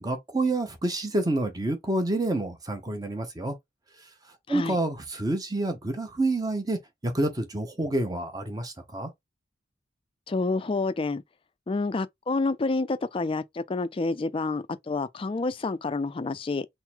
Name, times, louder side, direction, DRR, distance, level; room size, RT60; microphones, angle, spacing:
voice 1, 0.0-3.5 4.5-9.1, right 2 dB, 20° right, 0.9 m, -28 dB
voice 2, 10.3-11.2 11.7-16.7, left 3 dB, 30° left, 0.3 m, -28 dB
3.8 x 2.0 x 4.4 m
head